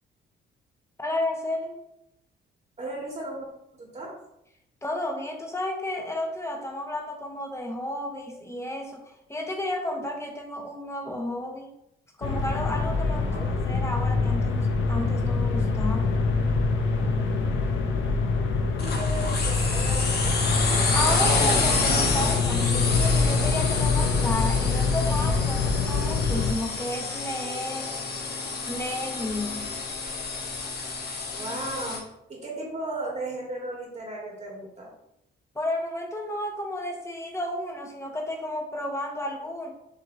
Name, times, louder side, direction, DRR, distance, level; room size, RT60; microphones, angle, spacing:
voice 1, 1.0-1.8 4.8-11.7 12.2-13.3 13.6-16.2 20.9-28.0 28.7-29.8 35.5-39.7, left 1 dB, 15° left, 2 dB, 1.0 m, -32 dB
voice 2, 2.8-3.5 3.7-4.1 13.1-13.9 18.8-20.6 31.4-32.0 32.3-34.9, right 2 dB, 35° right, -2 dB, 1.5 m, -36 dB
sound 1, 12.2-26.5, left 4 dB, 75° left, 0.7 m, -25 dB
sound 2, 18.8-32.0, left 4 dB, 55° left, 1.0 m, -29 dB
6.4 x 2.9 x 2.7 m, 0.82 s
cardioid pair, 90°, 20 cm